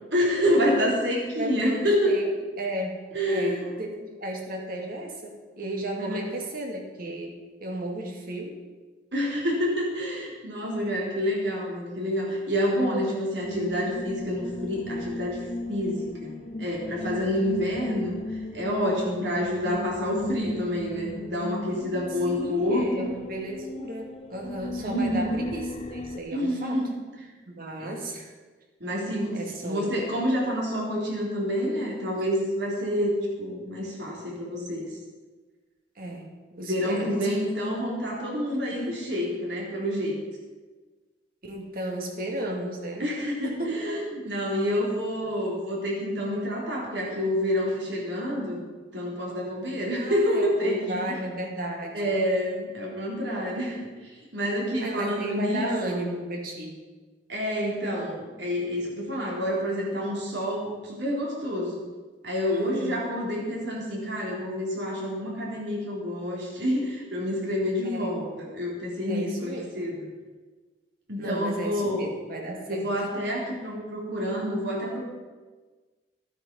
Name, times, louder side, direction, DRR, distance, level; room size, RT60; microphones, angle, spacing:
voice 1, 0.1-2.1 3.1-3.7 6.0-6.2 9.1-16.3 16.6-18.1 18.5-23.1 24.7-25.3 26.3-26.9 27.8-28.0 28.8-34.9 36.6-40.2 43.0-48.6 48.9-51.2 51.9-56.0 57.3-61.8 62.2-70.1 71.1-72.1 72.7-75.1, equal, 70° right, -3 dB, 3.6 m, -28 dB
voice 2, 1.4-2.3 2.6-3.0 3.3-8.6 22.2-26.8 27.5-28.3 29.3-30.1 36.0-36.3 36.5-37.3 41.4-43.1 43.4-43.7 49.9-52.0 54.8-56.8 62.5-62.9 67.9-68.2 69.1-69.8 71.2-72.9, right 1 dB, 55° right, 1 dB, 2.2 m, -34 dB
sound 1, 13.4-26.2, left 2 dB, 35° left, 0.7 m, -37 dB
12.5 x 8.8 x 5.4 m, 1.3 s
head